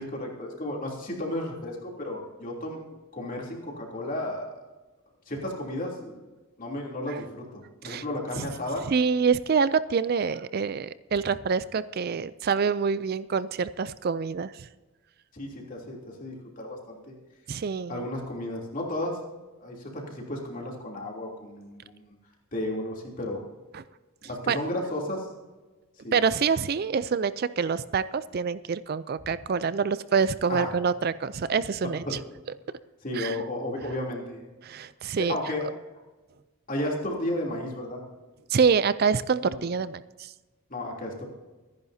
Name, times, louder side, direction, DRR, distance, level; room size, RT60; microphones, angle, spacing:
voice 1, 0.0-2.8 3.1-4.5 5.3-6.2 6.6-8.8 15.3-17.1 17.9-19.2 19.6-22.1 22.5-23.4 24.2-25.3 26.0-26.2 30.5-30.7 32.1-32.2 33.0-34.4 35.2-35.7 36.7-38.0 39.4-39.6 40.7-41.2, left 1 dB, 40° left, -1 dB, 3.1 m, -33 dB
voice 2, 8.9-14.7 17.5-18.0 23.7-23.8 24.5-24.6 26.1-32.2 33.1-33.4 34.6-35.4 38.5-40.3, right 5 dB, 45° right, 15 dB, 0.4 m, -26 dB
25.0 x 10.5 x 2.8 m, 1.2 s
head